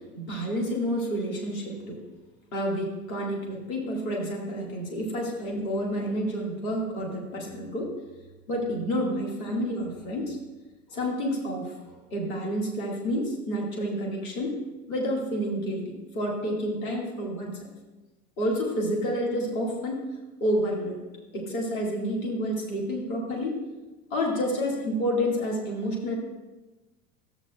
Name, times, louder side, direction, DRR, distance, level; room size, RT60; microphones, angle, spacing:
voice 1, 0.1-2.0 2.5-7.9 8.5-10.4 10.9-14.6 14.9-17.7 18.4-20.0 20.4-21.0 21.3-23.6 24.1-26.2, equal, 70° left, -1 dB, 1.8 m, -29 dB
13.0 x 7.6 x 2.2 m, 1.2 s
figure-of-eight pair, 70°, 43 cm